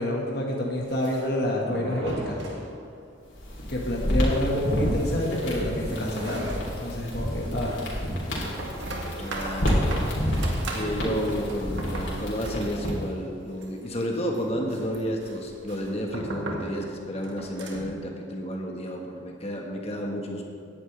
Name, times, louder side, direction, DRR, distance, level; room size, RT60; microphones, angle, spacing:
voice 1, 0.0-2.4 3.7-6.5 6.8-7.8, left 1 dB, 55° left, -2 dB, 1.8 m, -28 dB
sound 1, 0.8-3.2 3.4-3.5 3.8-3.9 4.4-18.0, right 1 dB, 75° right, 1.8 m, -38 dB
sound 2, 3.3-13.1, equal, 75° left, 3.5 m, -29 dB
voice 2, 9.2-20.4, equal, 30° left, 1 dB, 1.5 m, -31 dB
17.0 x 11.0 x 3.4 m, 2.4 s
head